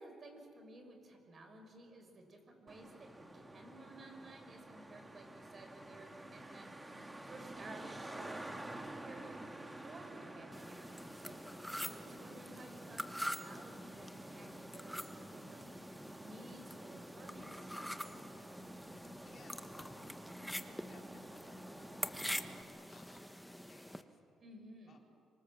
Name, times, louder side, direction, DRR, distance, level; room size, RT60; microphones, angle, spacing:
voice 1, 0.0-8.6 9.0-15.7 16.2-18.3 24.4-25.0, right 2 dB, 45° right, 4 dB, 5.6 m, -56 dB
Traffic noise roadway noise, 2.7-22.6, right 1 dB, 15° right, 2.1 m, -51 dB
sound 1, 10.5-24.0, equal, ahead, 1.3 m, -46 dB
voice 2, 19.2-20.2 20.5-24.2 24.9-25.0, left 4 dB, 50° left, 2 dB, 3.8 m, -64 dB
25.5 x 24.0 x 7.4 m, 2.7 s
cardioid pair, 90°, 0 cm